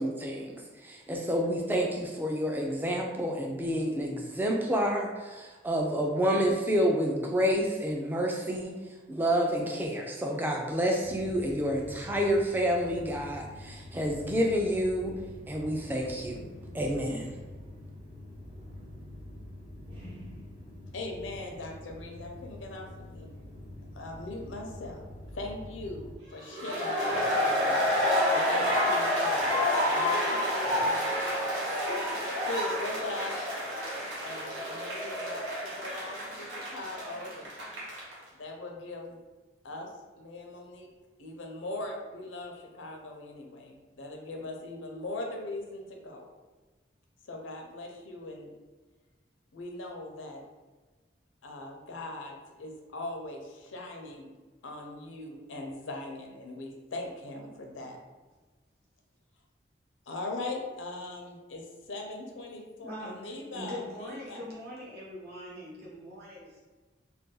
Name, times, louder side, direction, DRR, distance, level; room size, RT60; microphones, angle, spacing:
voice 1, 0.0-8.8 9.1-15.1 15.5-16.4 16.7-17.3, equal, 10° right, 1 dB, 0.3 m, -29 dB
sound 1, 11.0-26.1, left 1 dB, 30° right, 0.8 m, -46 dB
voice 2, 20.9-23.3 23.9-25.0 25.3-27.8 28.2-29.5 29.8-31.1 32.4-33.4 34.2-37.5 38.3-39.2 39.6-39.9 40.2-40.9 41.2-46.3 47.2-48.5 49.5-50.4 51.4-54.3 54.6-58.0 60.1-64.4, left 2 dB, 90° left, 1 dB, 0.6 m, -40 dB
sound 2, 26.5-38.1, left 1 dB, 85° right, 0.9 m, -29 dB
voice 3, 62.8-66.6, left 1 dB, 55° right, -7 dB, 1.0 m, -42 dB
2.5 x 2.3 x 3.7 m, 1.3 s
head